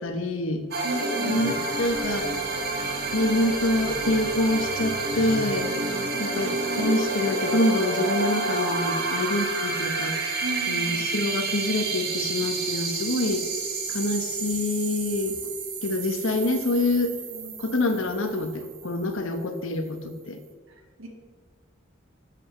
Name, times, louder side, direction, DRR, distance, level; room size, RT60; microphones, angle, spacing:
voice 1, 0.0-0.6 1.2-2.3 3.1-5.7 6.2-10.1 10.7-13.5 13.9-15.4 15.8-17.1 17.6-20.4, left 2 dB, 80° left, 7 dB, 1.1 m, -26 dB
sound 1, 0.7-19.2, right 3 dB, 50° right, 1.4 m, -29 dB
voice 2, 0.8-1.4 6.0-6.6 10.4-11.0 17.3-17.5 21.0-21.1, right 1 dB, 85° right, 2 dB, 1.8 m, -36 dB
8.0 x 5.8 x 7.2 m, 1.5 s
head